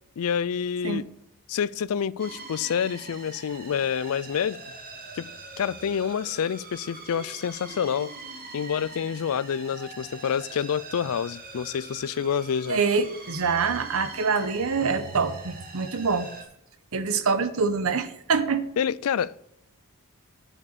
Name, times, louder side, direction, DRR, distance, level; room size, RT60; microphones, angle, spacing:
voice 1, 0.2-1.1 1.5-4.6 5.2-5.3 5.6-8.1 8.5-12.8 18.8-19.4, left 7 dB, 70° left, 0.4 m, -28 dB
sound 1, 2.2-16.4, right 3 dB, 40° right, 1.7 m, -43 dB
voice 2, 12.7-16.3 16.9-18.7, right 5 dB, 70° right, 0.9 m, -25 dB
9.9 x 6.5 x 6.6 m
head